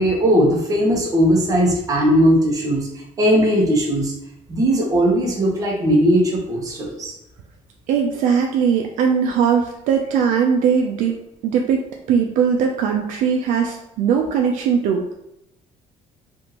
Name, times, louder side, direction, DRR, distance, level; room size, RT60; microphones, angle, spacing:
voice 1, 0.0-2.9 3.2-4.1 4.5-7.1, equal, 25° right, -2 dB, 0.8 m, -18 dB
voice 2, 7.9-11.2 11.4-15.0, right 7 dB, 65° right, 2 dB, 0.4 m, -19 dB
3.5 x 2.5 x 2.9 m, 0.83 s
cardioid pair, 145°, 14 cm